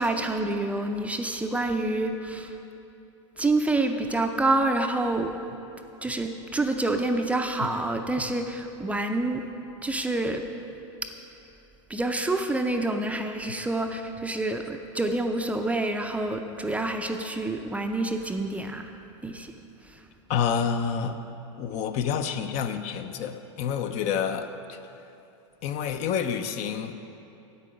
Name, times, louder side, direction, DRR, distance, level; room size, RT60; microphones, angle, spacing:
voice 1, 0.0-2.6 3.4-5.3 6.0-9.4 9.8-10.4 11.9-18.9 19.2-19.5 19.9-20.0, right 2 dB, 10° right, 5 dB, 0.5 m, -27 dB
voice 2, 20.3-21.2 21.6-24.8 25.6-26.9, left 7 dB, 45° left, 9 dB, 0.6 m, -28 dB
9.1 x 8.3 x 5.0 m, 2.8 s
hypercardioid pair, 115°, 16 cm